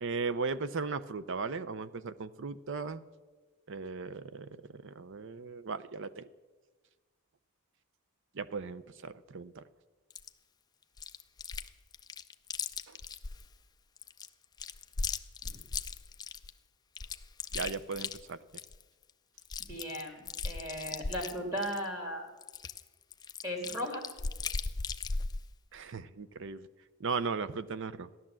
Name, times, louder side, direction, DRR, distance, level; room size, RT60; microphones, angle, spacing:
voice 1, 0.0-3.0 3.7-6.3 8.3-9.6 12.9-13.0 17.5-18.4 25.7-26.7 27.0-28.1, right 4 dB, 55° right, 15 dB, 0.6 m, -37 dB
Chewing mastication, 10.1-10.3 11.0-11.7 11.9-13.4 14.0-16.5 16.9-18.8 19.1-19.2 19.4-21.9 22.4-25.4, left 4 dB, 20° left, 0.4 m, -37 dB
voice 2, 19.6-22.3 23.4-24.0, equal, 15° right, 0 dB, 3.1 m, -37 dB
15.0 x 11.0 x 7.5 m, 1.3 s
head